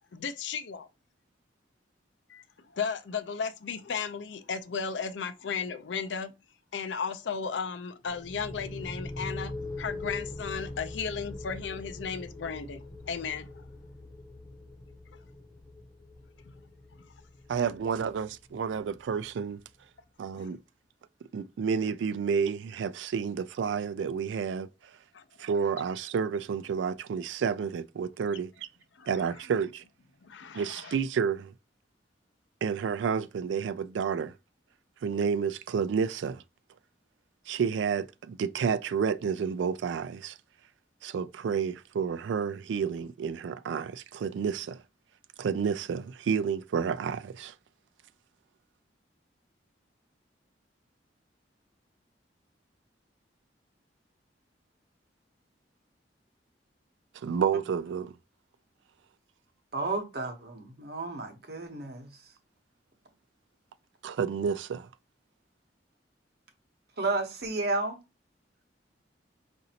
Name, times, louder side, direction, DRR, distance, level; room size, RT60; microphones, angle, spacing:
voice 1, 0.1-0.9 2.3-2.4 2.7-6.3 6.7-9.5 9.8-13.6 20.3-20.5 25.1-25.2 29.0-29.1 30.2-30.9, left 6 dB, 85° left, 0.5 m, -35 dB
sound 1, 8.1-19.6, left 2 dB, 20° left, 0.4 m, -42 dB
voice 2, 17.5-19.6 20.2-20.6 21.3-24.7 25.4-28.5 29.1-29.8 30.5-31.5 32.6-34.3 35.0-36.4 37.5-40.4 41.0-44.8 45.4-47.5 57.2-58.1 64.0-64.9, right 6 dB, 85° right, 0.3 m, -30 dB
voice 3, 59.7-62.1 67.0-68.0, right 3 dB, 60° right, 0.9 m, -32 dB
5.0 x 2.6 x 2.8 m
head